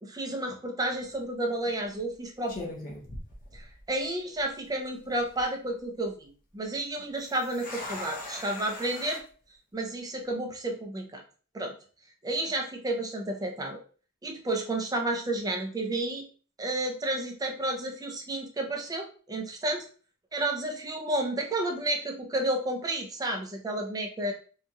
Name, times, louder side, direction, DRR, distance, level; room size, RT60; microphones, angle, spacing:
voice 1, 0.0-2.7 3.5-9.2 9.7-11.2 11.5-11.7 12.2-13.8 14.2-16.3 16.6-19.9 20.3-24.3, right 1 dB, 15° right, 2 dB, 0.5 m, -31 dB
sound 1, 0.9-1.2 2.0-2.1 2.5-4.1 4.3-4.4 5.1-5.4 7.2-9.2, left 2 dB, 40° left, 0.7 m, -41 dB
2.8 x 2.7 x 2.3 m, 0.40 s
head